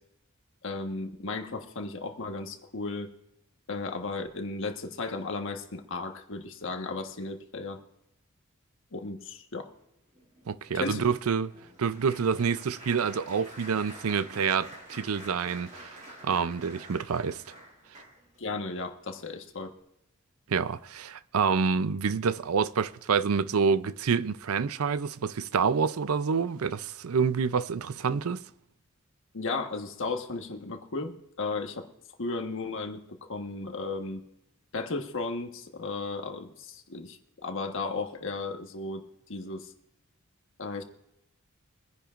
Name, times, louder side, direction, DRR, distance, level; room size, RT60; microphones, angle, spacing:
voice 1, 0.6-3.1 3.7-7.8 8.9-9.7 10.7-11.0 18.4-19.7 29.3-31.9 32.2-33.0 33.3-34.2 34.7-39.7 40.6-40.8, left 3 dB, 65° left, 1.4 m, -35 dB
Applause, 10.1-18.5 19.1-19.3 19.6-19.8, right 1 dB, 35° right, 5.8 m, -48 dB
voice 2, 10.5-11.5 11.8-17.4 20.5-28.5, right 6 dB, 85° right, 0.5 m, -27 dB
24.0 x 10.0 x 2.5 m
head